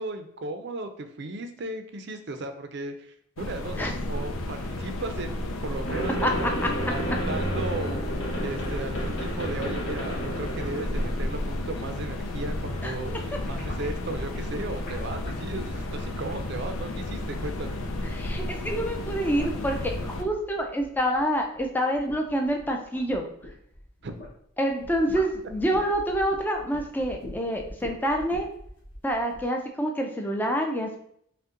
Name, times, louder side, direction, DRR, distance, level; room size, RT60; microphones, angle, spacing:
voice 1, 0.0-6.5 6.9-8.0 8.4-17.8 24.0-24.1, right 2 dB, 55° right, 7 dB, 0.5 m, -36 dB
sound 1, 3.4-20.2, left 1 dB, 85° left, 0.5 m, -33 dB
sound 2, 5.9-11.9, right 1 dB, 65° left, 1.1 m, -31 dB
voice 2, 6.2-6.7 12.8-12.9 18.1-23.3 24.6-28.5 29.0-31.0, equal, 10° left, 2 dB, 0.4 m, -27 dB
sound 3, 12.0-18.0 18.3-24.4 24.7-29.5, left 1 dB, 40° left, 1.1 m, -44 dB
5.3 x 2.2 x 3.7 m, 0.69 s
head